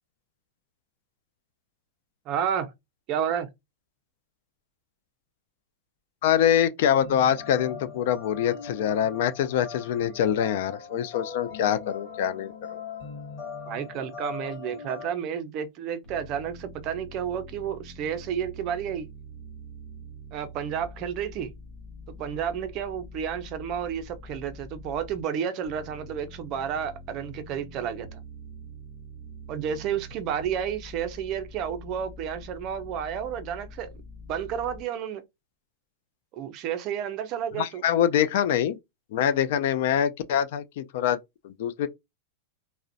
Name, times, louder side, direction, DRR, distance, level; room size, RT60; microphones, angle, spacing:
voice 1, 2.3-2.7 3.1-3.5 13.7-19.1 20.3-21.5 22.1-28.2 29.5-33.9 34.3-35.2 36.3-37.8, right 8 dB, 35° right, 0.4 m, -31 dB
voice 2, 6.2-12.8 37.6-38.8 39.1-41.2 41.4-41.9, left 9 dB, 60° left, 0.3 m, -24 dB
sound 1, 7.0-15.1, left 6 dB, 35° left, 1.5 m, -40 dB
sound 2, 16.0-25.2 25.6-34.8, equal, ahead, 0.9 m, -45 dB
2.4 x 2.0 x 2.5 m
supercardioid pair, 155°, 0 cm